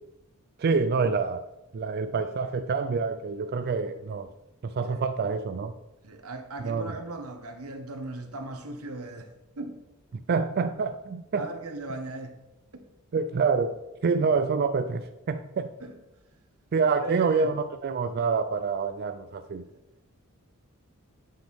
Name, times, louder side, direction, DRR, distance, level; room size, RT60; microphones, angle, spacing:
voice 1, 0.6-1.4 1.7-4.3 4.6-5.7 6.6-6.9 10.1-11.5 13.1-13.8 14.0-15.7 16.7-19.7, right 5 dB, 50° right, 0.4 m, -27 dB
voice 2, 6.0-9.8 11.3-12.3 12.7-12.9 15.8-16.0 17.0-17.5 19.7-19.8, right 2 dB, 90° right, 1.3 m, -37 dB
9.1 x 7.6 x 3.5 m
head